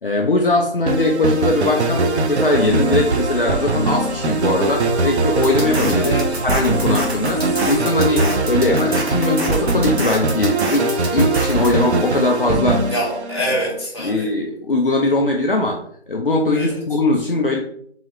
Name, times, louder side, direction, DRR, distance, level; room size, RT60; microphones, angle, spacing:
voice 1, 0.0-6.2 6.4-12.9 14.0-15.8 16.1-17.6, left 2 dB, 55° left, 1 dB, 0.5 m, -20 dB
sound 1, 0.9-13.8, right 2 dB, 85° right, 0.6 m, -21 dB
sound 2, 2.5-7.8, left 1 dB, 40° right, 1.1 m, -33 dB
sound 3, 5.4-11.7, right 1 dB, 70° right, 1.2 m, -27 dB
voice 2, 5.9-6.4 12.9-14.3 16.5-16.8, equal, 25° left, -7 dB, 1.1 m, -25 dB
3.8 x 2.9 x 3.1 m, 0.65 s
figure-of-eight pair, 175°, 33 cm